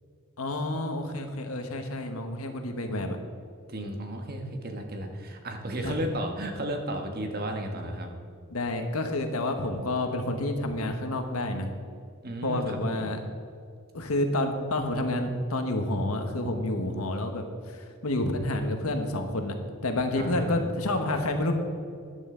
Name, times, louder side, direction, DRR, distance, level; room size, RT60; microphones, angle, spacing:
voice 1, 0.4-3.2 5.8-6.0 8.5-11.7 12.4-13.2 13.9-19.6 19.8-21.5, left 1 dB, 80° left, 5 dB, 1.3 m, -29 dB
voice 2, 3.7-8.1 12.2-13.1 20.1-20.6, right 1 dB, 45° right, 3 dB, 1.4 m, -33 dB
13.0 x 10.5 x 3.9 m, 2.3 s
head